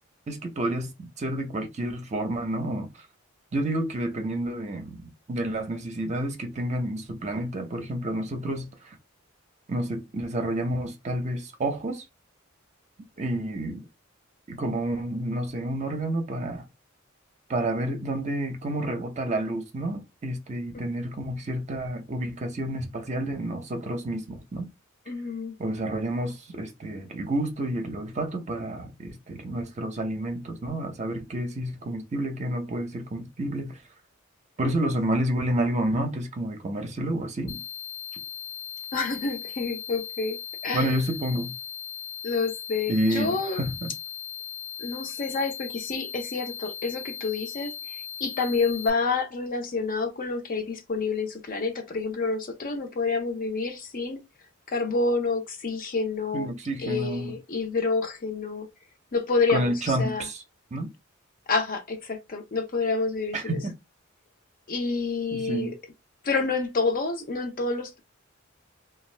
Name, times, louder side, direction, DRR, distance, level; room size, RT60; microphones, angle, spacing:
voice 1, 0.3-2.9 3.5-9.0 9.7-12.0 13.2-13.8 14.5-16.7 17.5-24.7 25.6-33.8 34.6-37.6 40.7-41.5 42.9-43.9 56.3-57.3 59.5-60.4 60.7-60.9 63.3-63.7 65.3-65.7, right 1 dB, 35° right, 0.6 m, -29 dB
voice 2, 25.1-25.5 38.9-41.0 42.2-43.6 44.8-54.2 54.7-56.5 56.8-58.7 59.1-59.7 60.0-60.3 61.5-63.6 64.7-65.7 66.2-68.0, left 4 dB, 45° left, 0.6 m, -28 dB
sound 1, 37.5-48.9, left 9 dB, 85° left, 0.6 m, -38 dB
2.5 x 2.3 x 3.2 m
head